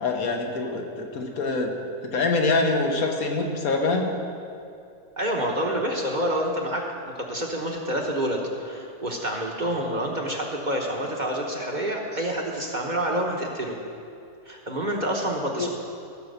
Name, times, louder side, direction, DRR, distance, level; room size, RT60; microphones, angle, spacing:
voice 1, 0.0-1.7 2.0-4.2 15.6-15.7, left 3 dB, 75° left, 2 dB, 1.6 m, -25 dB
voice 2, 5.2-13.8 14.5-15.7, right 1 dB, 35° right, 0 dB, 1.1 m, -28 dB
15.0 x 5.9 x 6.6 m, 2.5 s
omnidirectional pair, 1.5 m